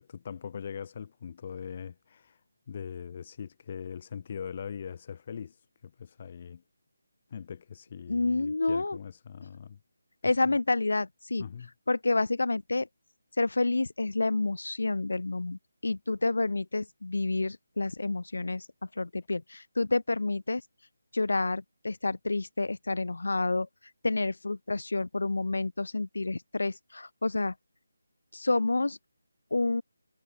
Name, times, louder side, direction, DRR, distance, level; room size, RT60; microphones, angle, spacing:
voice 1, 0.0-2.4 2.7-5.6 5.8-6.6 7.3-9.8 10.2-10.6 11.4-11.7, left 7 dB, 25° left, 0.7 m, -41 dB
voice 2, 8.1-9.0 10.2-11.4 11.9-12.9 13.4-18.7 19.0-20.6 21.1-23.7 24.0-27.5 28.3-29.0 29.5-29.8, left 3 dB, 70° left, 0.5 m, -29 dB
figure-of-eight pair, 180°, 0 cm